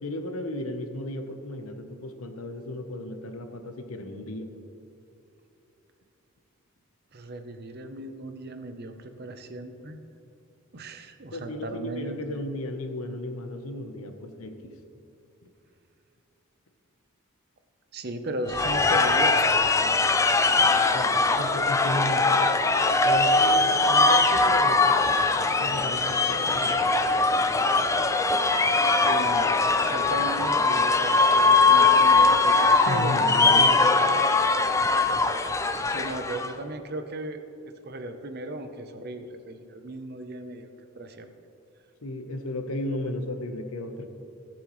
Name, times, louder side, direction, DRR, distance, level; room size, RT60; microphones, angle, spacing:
voice 1, 0.0-4.5 11.3-14.7 20.6-22.4 23.0-24.9 25.6-27.1 32.9-33.7 42.0-44.1, left 1 dB, 75° left, 6 dB, 0.9 m, -34 dB
voice 2, 7.1-10.0 10.7-12.4 17.9-20.0 29.0-29.5 29.8-33.9 35.9-40.7 40.9-41.3, right 2 dB, 45° right, 7 dB, 0.7 m, -36 dB
sound 1, 18.5-36.5, left 3 dB, 15° left, 0.3 m, -21 dB
18.0 x 7.3 x 3.1 m, 2.8 s
head